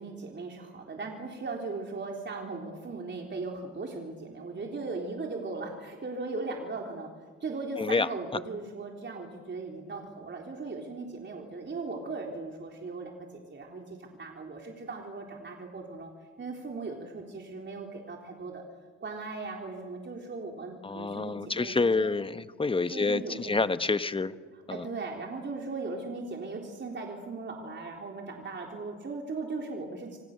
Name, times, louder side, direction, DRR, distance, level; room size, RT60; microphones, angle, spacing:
voice 1, 0.0-7.1 7.4-16.1 16.4-18.6 19.0-22.2 22.9-23.7 24.5-30.2, right 3 dB, 35° right, 1 dB, 3.8 m, -38 dB
voice 2, 20.8-24.3 24.7-24.8, left 3 dB, 20° left, 12 dB, 1.0 m, -28 dB
28.5 x 25.0 x 6.7 m, 1.5 s
cardioid pair, 90°, 30 cm